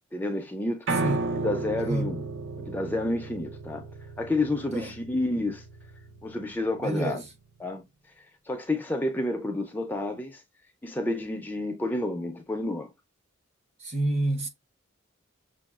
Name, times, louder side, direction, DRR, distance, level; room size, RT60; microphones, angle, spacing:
voice 1, 0.1-0.9 1.4-2.2 2.6-3.9 4.2-5.6 6.2-7.2 7.6-7.8 8.5-10.4 10.8-12.9, left 2 dB, 10° left, 0.4 m, -30 dB
Piano, 0.9-7.0, right 3 dB, 65° right, 0.7 m, -34 dB
voice 2, 1.0-1.3 1.8-2.1 4.7-4.9 6.8-7.3 13.8-14.5, right 1 dB, 35° right, 0.8 m, -28 dB
6.1 x 2.3 x 2.3 m
head